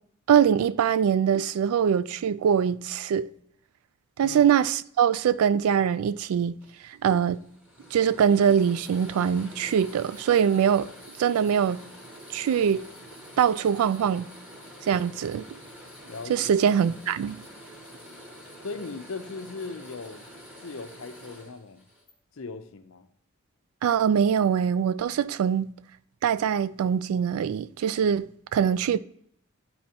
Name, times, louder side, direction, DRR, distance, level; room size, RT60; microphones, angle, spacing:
voice 1, 0.3-3.3 4.2-6.6 6.8-7.4 7.9-10.9 11.2-11.8 12.3-12.9 13.4-14.3 14.8-15.5 16.3-17.4 23.8-25.7 26.2-29.0, right 8 dB, 85° right, 0.3 m, -23 dB
sound 1, 6.6-22.1, equal, 5° right, 1.2 m, -47 dB
voice 2, 16.0-16.3 18.6-20.2 20.6-21.9 22.3-23.1, left 4 dB, 70° left, 0.6 m, -38 dB
10.5 x 4.2 x 2.8 m
head